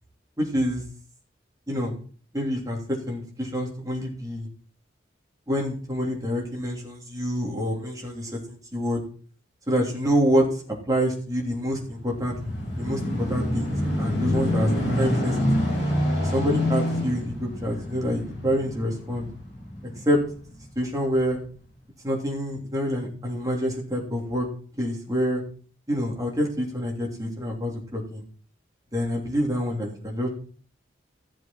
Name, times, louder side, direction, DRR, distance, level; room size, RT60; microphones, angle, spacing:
voice 1, 0.4-0.8 1.7-1.9 2.3-4.5 5.5-9.0 9.7-10.6 10.9-12.3 12.8-13.0 13.3-14.7 14.9-15.6 16.2-19.3 20.0-20.2 20.7-21.4 22.0-24.5 24.8-25.4 25.9-28.3 28.9-30.3, equal, 20° right, -2 dB, 3.1 m, -27 dB
sound 1, 11.9-20.5 21.1-21.3, left 1 dB, 35° left, 7.4 m, -27 dB
15.0 x 7.5 x 4.4 m, 0.43 s
head